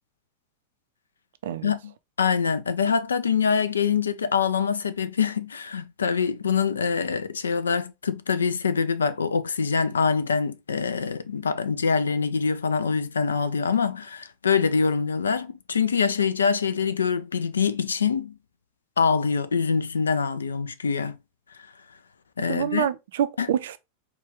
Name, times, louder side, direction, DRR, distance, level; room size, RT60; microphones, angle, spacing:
voice 1, 2.2-18.3 19.0-21.2 22.4-22.9 23.4-23.5, left 5 dB, 70° left, 0.4 m, -24 dB
voice 2, 22.5-23.8, right 10 dB, 60° right, 0.4 m, -26 dB
4.5 x 2.3 x 3.4 m
figure-of-eight pair, 90°, 0 cm